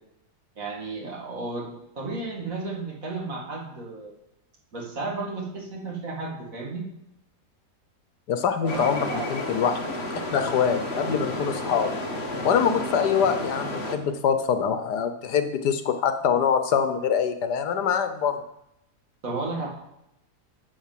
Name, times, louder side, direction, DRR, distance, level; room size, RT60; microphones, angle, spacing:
voice 1, 0.6-4.1 4.7-6.8 8.6-9.4 19.2-19.7, right 3 dB, 55° right, -2 dB, 2.7 m, -33 dB
voice 2, 8.3-9.8 10.3-11.9 12.4-18.4, left 7 dB, 80° left, 9 dB, 1.5 m, -24 dB
sound 1, 8.7-14.0, left 1 dB, 40° left, 1.5 m, -32 dB
10.0 x 5.4 x 7.5 m, 0.82 s
omnidirectional pair, 1.8 m